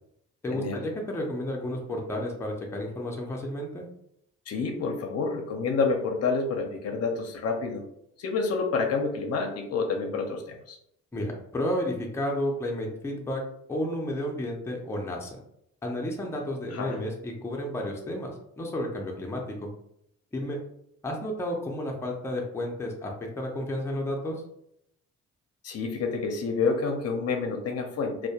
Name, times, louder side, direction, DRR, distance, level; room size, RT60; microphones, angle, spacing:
voice 1, 0.4-3.9 11.1-13.4 13.7-15.4 15.8-19.7 20.3-20.6 21.0-24.4, left 1 dB, 10° left, 0 dB, 0.5 m, -32 dB
voice 2, 4.5-7.8 8.2-10.8 16.7-17.0 25.6-28.3, left 4 dB, 55° left, 3 dB, 0.5 m, -28 dB
2.1 x 2.1 x 2.7 m, 0.76 s
cardioid pair, 90°, 30 cm